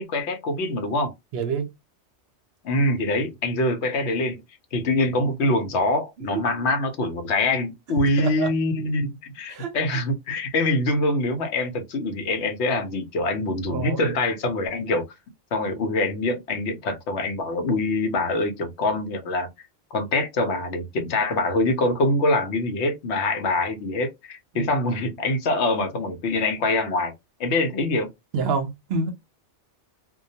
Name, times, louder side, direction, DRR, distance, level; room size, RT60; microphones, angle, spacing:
voice 1, 0.0-1.1 2.6-4.4 4.7-15.0 15.5-19.5 19.9-27.1 27.4-28.1, left 2 dB, 70° left, 0.9 m, -24 dB
voice 2, 1.3-1.7 6.2-6.7 8.2-8.5 9.5-9.7 13.7-14.1 24.5-24.8 28.3-29.1, right 5 dB, 65° right, 0.8 m, -28 dB
2.2 x 2.1 x 2.6 m
omnidirectional pair, 1.2 m